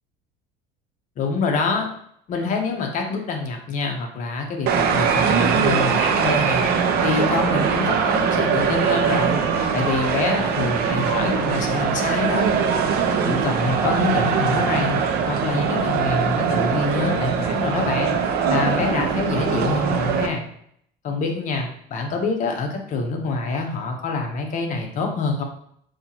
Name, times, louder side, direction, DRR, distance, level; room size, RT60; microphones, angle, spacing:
voice 1, 1.2-1.9 2.3-6.7 7.0-9.4 9.7-12.5 13.2-18.2 18.4-20.5 21.0-25.4, left 4 dB, 40° left, 2 dB, 0.8 m, -25 dB
sound 1, 4.7-20.3, right 6 dB, 55° right, 0.6 m, -21 dB
5.4 x 2.8 x 2.9 m, 0.68 s
cardioid pair, 145°, 19 cm